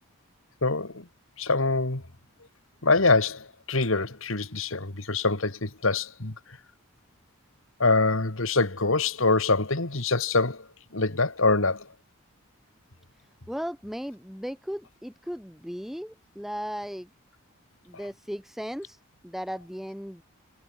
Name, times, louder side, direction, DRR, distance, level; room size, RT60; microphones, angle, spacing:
voice 1, 0.6-1.0 1.4-2.0 2.8-6.3 7.8-10.6 10.9-11.8, left 3 dB, 65° left, 2.3 m, -24 dB
voice 2, 13.2-17.1 17.8-20.2, equal, ahead, 2.4 m, -36 dB
head